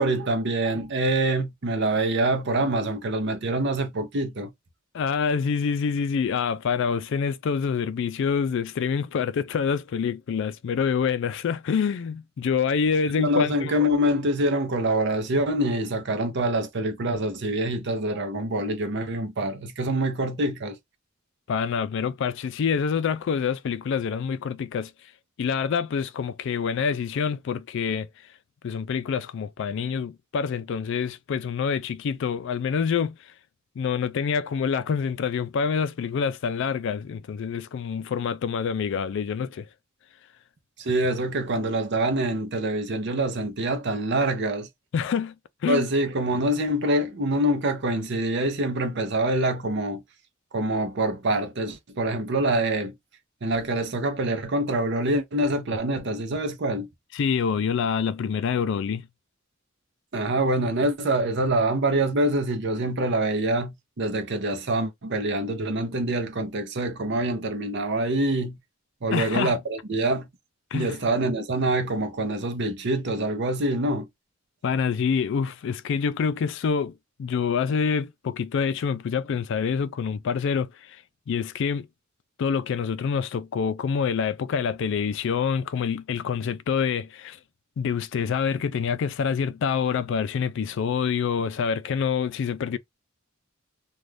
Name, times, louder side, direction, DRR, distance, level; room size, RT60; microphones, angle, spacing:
voice 1, 0.0-4.5 13.2-20.8 40.8-44.7 45.7-50.0 50.5-53.0 53.4-56.9 60.1-68.6 69.0-70.3 70.7-74.1, right 1 dB, 60° right, 0.7 m, -25 dB
voice 2, 4.9-13.8 21.5-24.9 25.4-28.1 28.6-33.2 33.8-39.7 44.9-45.3 45.6-45.9 57.1-59.0 69.1-69.5 70.7-71.0 74.6-81.0 81.3-81.9 82.4-87.4 87.8-92.8, left 6 dB, 60° left, 0.3 m, -26 dB
2.5 x 2.3 x 3.2 m
head